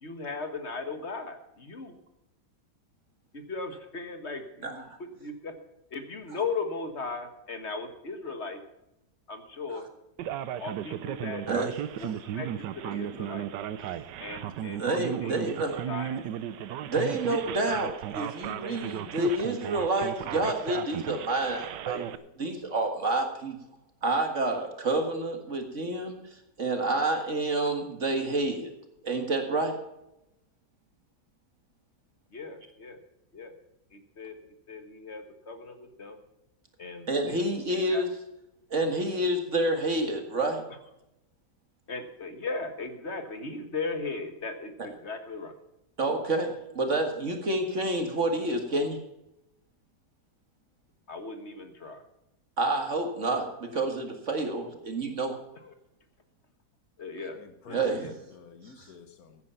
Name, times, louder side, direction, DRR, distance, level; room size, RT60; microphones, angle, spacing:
voice 1, 0.0-2.0 3.3-4.8 5.2-5.5 5.9-8.6 9.3-9.9 10.6-11.4 12.0-12.5 12.7-13.5 14.2-15.3 15.9-16.1 32.3-33.0 33.3-33.5 33.9-34.4 34.7-36.2 36.8-38.0 41.9-45.5 51.1-52.0 55.6-55.7 57.0-57.4 57.6-58.1, left 4 dB, 40° left, 1.7 m, -37 dB
Male speech man speaking, 10.2-22.2, right 10 dB, 85° right, 1.4 m, -35 dB
voice 2, 14.8-15.8 16.9-22.1 22.4-23.6 24.0-26.2 26.6-28.7 29.0-29.7 37.1-38.1 38.7-40.6 46.0-49.0 52.6-55.4 57.7-58.0, right 2 dB, 45° right, 2.0 m, -28 dB
voice 3, 57.3-59.4, left 5 dB, 60° left, 1.6 m, -49 dB
15.0 x 9.6 x 5.7 m
omnidirectional pair, 1.8 m